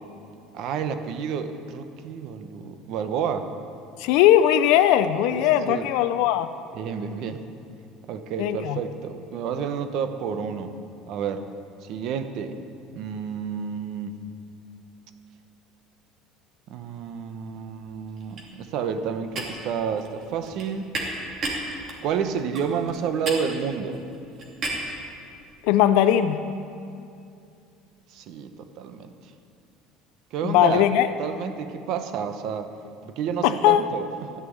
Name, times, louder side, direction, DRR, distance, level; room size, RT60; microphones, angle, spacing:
voice 1, 0.5-3.5 5.3-5.9 6.7-7.4 8.1-10.7 11.1-11.4 11.8-12.5 12.9-14.1 16.7-21.1 22.0-24.0 28.1-29.1 30.3-30.8 31.2-32.7 33.1-34.0, right 7 dB, 60° right, 8 dB, 1.0 m, -30 dB
voice 2, 4.0-6.5 8.4-8.8 25.6-26.4 30.4-31.1 33.4-33.9, left 11 dB, 75° left, 10 dB, 0.5 m, -19 dB
sound 1, 17.1-17.5 17.7-25.0, right 2 dB, 40° right, 2.6 m, -34 dB
14.5 x 6.1 x 9.5 m, 2.5 s
cardioid pair, 140°, 0 cm